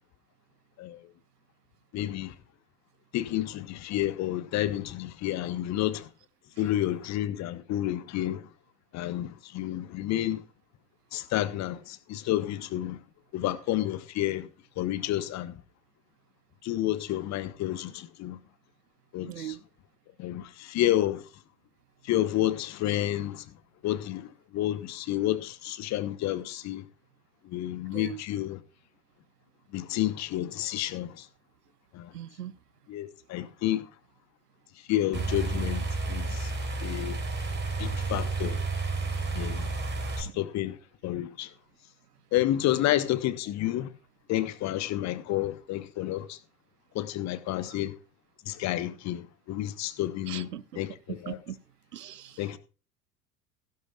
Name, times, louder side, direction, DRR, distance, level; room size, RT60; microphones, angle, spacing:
voice 1, 1.9-2.3 3.1-6.1 6.6-8.5 8.9-10.4 11.1-13.0 13.3-14.5 14.8-15.6 16.6-18.4 19.1-19.6 20.2-21.2 22.0-23.4 23.8-26.9 27.4-28.6 29.7-31.3 31.9-32.1 32.9-33.9 34.9-36.5 36.8-37.2 37.8-38.6 39.3-39.7 40.2-40.8 41.0-41.5 42.3-43.9 44.3-46.4 46.9-47.9 48.5-50.5 50.7-51.4 52.4-52.6, left 13 dB, 35° left, 1.1 m, -30 dB
voice 2, 19.3-19.6 27.9-28.2 32.1-32.5 40.2-40.3 50.3-50.6 51.1-51.6 51.9-52.4, right 11 dB, 75° right, 0.7 m, -39 dB
sound 1, 35.1-40.2, right 3 dB, 25° right, 4.0 m, -31 dB
16.0 x 11.5 x 2.4 m
figure-of-eight pair, 75°, 47 cm